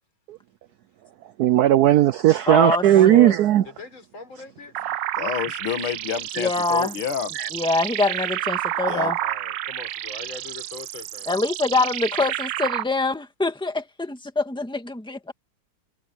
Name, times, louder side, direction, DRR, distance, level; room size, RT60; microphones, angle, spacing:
voice 1, 1.4-3.7 7.3-7.5, right 13 dB, 85° right, 0.8 m, -16 dB
voice 2, 2.5-3.3 6.4-6.9 7.5-9.2 11.3-15.3, left 3 dB, ahead, 2.1 m, -24 dB
voice 3, 3.6-4.8 9.2-11.3, left 3 dB, 70° left, 5.4 m, -41 dB
sound 1, 4.7-12.8, right 13 dB, 70° right, 1.2 m, -30 dB
voice 4, 5.2-7.3 8.9-9.1, left 8 dB, 90° left, 2.2 m, -28 dB
omnidirectional pair, 2.3 m